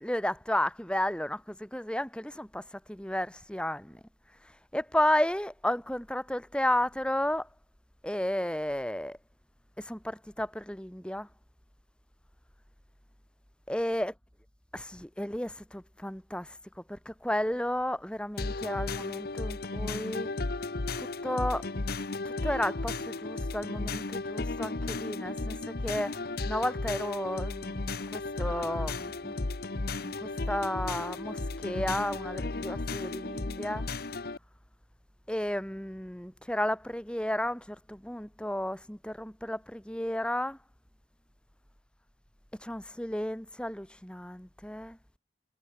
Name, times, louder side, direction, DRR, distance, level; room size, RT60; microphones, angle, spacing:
voice 1, 0.0-4.0 4.4-7.5 8.0-9.2 9.8-11.3 13.7-14.1 14.7-20.3 21.0-21.7 22.2-29.4 30.0-33.9 35.3-40.6 42.5-45.0, left 1 dB, 5° left, 1.9 m, -33 dB
sound 1, 18.4-34.4, left 3 dB, 55° left, 0.9 m, -34 dB
head